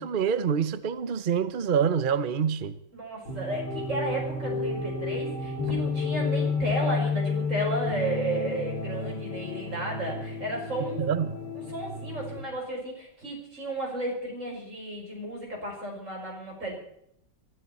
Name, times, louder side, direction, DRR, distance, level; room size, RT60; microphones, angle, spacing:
voice 1, 0.0-2.8 11.0-11.4, right 7 dB, 65° right, 0.5 m, -26 dB
voice 2, 2.9-11.0 11.7-16.8, right 1 dB, 40° right, 6.3 m, -33 dB
sound 1, 3.3-12.4, left 4 dB, 65° left, 3.1 m, -31 dB
23.0 x 13.5 x 4.3 m
omnidirectional pair, 2.1 m